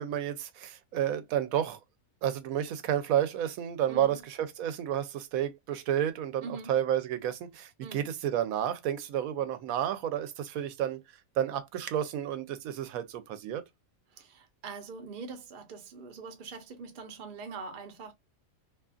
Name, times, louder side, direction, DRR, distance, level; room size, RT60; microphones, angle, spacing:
voice 1, 0.0-1.8 2.2-11.0 11.4-13.6, right 10 dB, 85° right, 1.0 m, -31 dB
voice 2, 3.9-4.2 6.4-6.7 7.8-8.1 14.1-18.1, right 4 dB, 45° right, 0.8 m, -43 dB
2.7 x 2.4 x 2.3 m
omnidirectional pair, 1.4 m